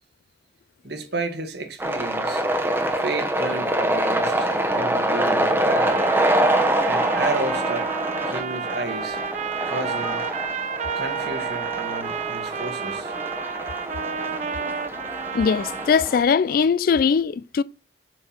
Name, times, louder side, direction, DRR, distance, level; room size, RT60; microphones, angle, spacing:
voice 1, 0.8-2.4 3.0-6.1 6.9-7.9 8.2-9.2 9.6-10.2 10.9-13.1, right 2 dB, 65° right, 1.5 m, -32 dB
sound 1, 1.8-16.2, right 1 dB, 10° right, 0.9 m, -25 dB
Trumpet, 5.7-16.1, right 6 dB, 40° right, 0.5 m, -31 dB
voice 2, 15.3-17.6, left 6 dB, 50° left, 0.3 m, -20 dB
7.7 x 4.5 x 5.9 m
head